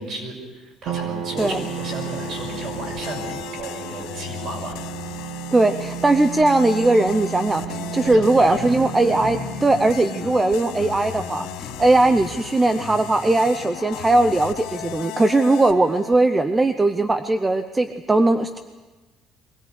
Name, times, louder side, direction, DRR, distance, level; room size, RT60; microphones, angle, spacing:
voice 1, 0.0-4.8 8.0-8.7 13.4-13.5, right 2 dB, 45° right, 1 dB, 6.0 m, -34 dB
sound 1, 0.9-14.1, right 10 dB, 75° right, 1.6 m, -35 dB
sound 2, 1.4-16.2, left 16 dB, 90° left, 0.7 m, -36 dB
voice 2, 5.5-18.6, right 2 dB, 15° right, 9 dB, 0.6 m, -19 dB
sound 3, 7.7-14.1, left 3 dB, 25° left, 3.0 m, -40 dB
22.5 x 17.5 x 8.1 m, 1.2 s
cardioid pair, 165°, 0 cm